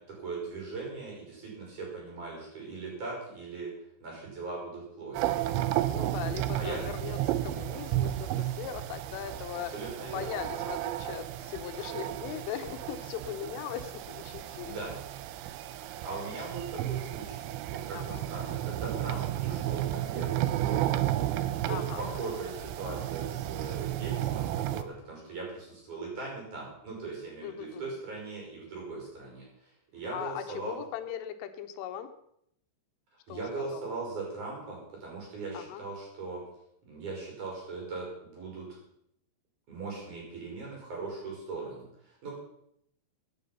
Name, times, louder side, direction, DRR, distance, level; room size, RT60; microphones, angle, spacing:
voice 1, 0.0-3.7 4.0-5.4 6.5-6.8 9.6-10.7 14.6-15.0 15.8-17.4 17.7-20.8 21.6-30.8 33.3-36.4 36.8-38.7 39.7-42.3, right 3 dB, 40° right, -2 dB, 6.8 m, -39 dB
sound 1, 5.1-24.8, right 13 dB, 80° right, 2.9 m, -33 dB
voice 2, 5.9-9.7 10.1-14.8 17.9-18.2 21.7-22.3 27.4-28.0 30.1-32.1 33.3-33.8 35.5-35.8, left 10 dB, 85° left, 9 dB, 3.6 m, -39 dB
17.0 x 9.6 x 5.6 m, 0.73 s
omnidirectional pair, 5.6 m